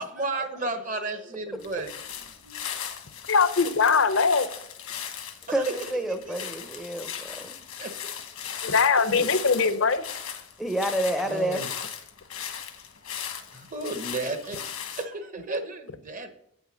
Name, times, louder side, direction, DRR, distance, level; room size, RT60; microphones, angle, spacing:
voice 1, 0.0-1.9 2.4-2.6 5.5-5.7 6.1-6.4 7.8-7.9 11.3-11.7 13.5-16.3, right 2 dB, 35° right, 7 dB, 1.0 m, -33 dB
sound 1, 1.6-15.0, left 8 dB, 90° left, 1.4 m, -38 dB
voice 2, 3.3-4.5 8.6-10.0, left 5 dB, 65° left, 12 dB, 0.7 m, -21 dB
voice 3, 5.5-7.6 9.1-9.3 10.6-11.6, right 1 dB, ahead, 8 dB, 0.6 m, -29 dB
9.0 x 6.3 x 6.2 m, 0.73 s
head